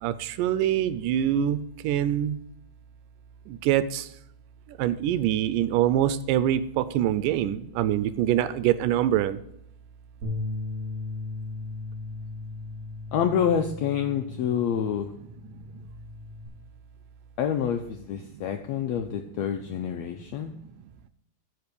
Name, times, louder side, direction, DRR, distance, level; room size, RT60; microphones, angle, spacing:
voice 1, 0.0-2.4 3.5-4.1 4.7-9.4 18.3-18.4, right 11 dB, 80° right, 14 dB, 2.2 m, -25 dB
Bass guitar, 10.2-16.5, left 3 dB, 30° right, 2.7 m, -37 dB
voice 2, 13.1-15.1 17.4-20.5, left 8 dB, 80° left, 4 dB, 1.5 m, -27 dB
14.0 x 5.2 x 5.1 m, 0.75 s
omnidirectional pair, 3.8 m